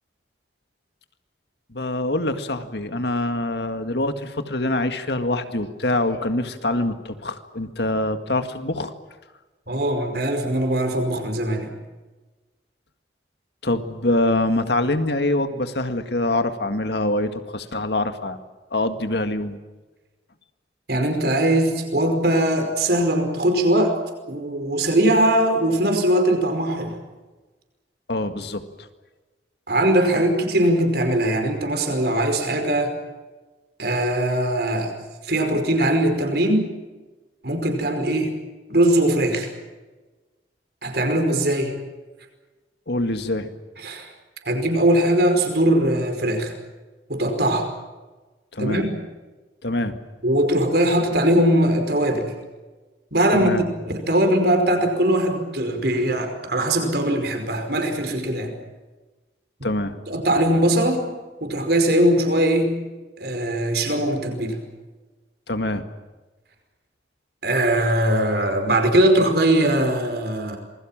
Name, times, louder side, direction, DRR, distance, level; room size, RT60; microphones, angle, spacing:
voice 1, 1.7-8.9 13.6-18.4 18.7-19.6 28.1-28.6 42.9-43.5 48.5-48.8 49.6-50.0 53.3-53.6 59.6-59.9 65.5-65.8, left 1 dB, 65° left, 8 dB, 1.9 m, -24 dB
voice 2, 9.7-11.7 20.9-24.0 24.3-27.0 29.7-33.0 33.8-35.0 35.2-36.7 37.4-38.4 38.7-39.5 40.8-41.8 43.8-44.1 44.5-46.5 47.1-47.7 48.6-48.8 50.2-52.3 53.1-58.5 60.1-61.1 61.4-62.7 63.2-64.6 67.4-70.6, right 1 dB, 60° right, 6 dB, 5.2 m, -20 dB
27.5 x 21.5 x 7.5 m, 1.2 s
head